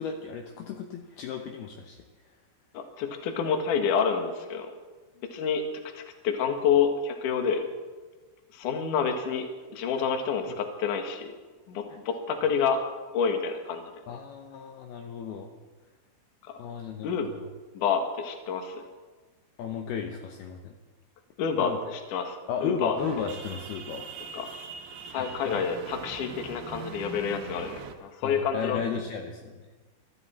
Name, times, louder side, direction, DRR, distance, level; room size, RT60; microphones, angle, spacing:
voice 1, 0.0-2.0 10.5-10.6 14.1-15.5 16.6-17.5 19.6-20.8 21.6-21.8 22.5-24.0 25.2-25.6 28.2-29.7, left 6 dB, 80° left, 3 dB, 2.2 m, -34 dB
voice 2, 2.7-4.7 5.3-5.6 5.9-7.6 8.5-11.3 11.7-12.9 13.1-13.9 16.4-16.6 17.0-17.3 17.7-18.9 21.4-22.9 24.3-24.5 25.1-28.8, left 6 dB, 65° left, 5 dB, 2.1 m, -28 dB
sound 1, 23.0-28.0, right 5 dB, 75° right, 3.5 m, -42 dB
23.0 x 14.0 x 4.3 m, 1.3 s
omnidirectional pair, 5.8 m